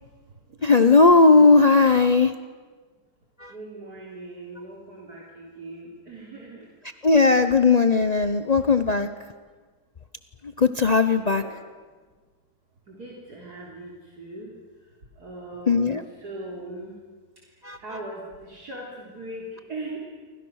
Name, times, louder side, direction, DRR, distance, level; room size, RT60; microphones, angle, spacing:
voice 1, 0.6-2.3 3.4-3.5 7.0-9.1 10.6-11.4 15.7-16.0 17.6-17.8, left 4 dB, 85° left, 9 dB, 0.3 m, -17 dB
voice 2, 3.5-6.7 10.9-11.5 12.9-14.5 15.2-16.9 17.8-20.0, right 2 dB, 55° right, -3 dB, 4.0 m, -39 dB
28.5 x 24.5 x 6.4 m, 1.5 s
omnidirectional pair, 2.0 m